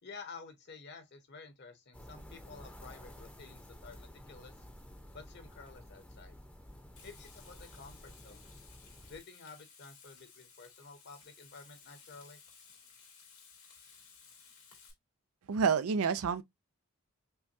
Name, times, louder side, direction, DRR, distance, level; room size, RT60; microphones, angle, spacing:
voice 1, 0.0-4.7 5.1-6.4 7.0-8.5 9.1-12.4, left 4 dB, 50° left, 1.0 m, -51 dB
sound 1, 1.9-9.2, left 1 dB, 5° left, 0.7 m, -52 dB
Frying (food), 7.0-14.9, left 6 dB, 85° left, 2.6 m, -58 dB
voice 2, 15.5-16.4, right 6 dB, 80° right, 0.5 m, -28 dB
5.5 x 2.2 x 2.7 m
head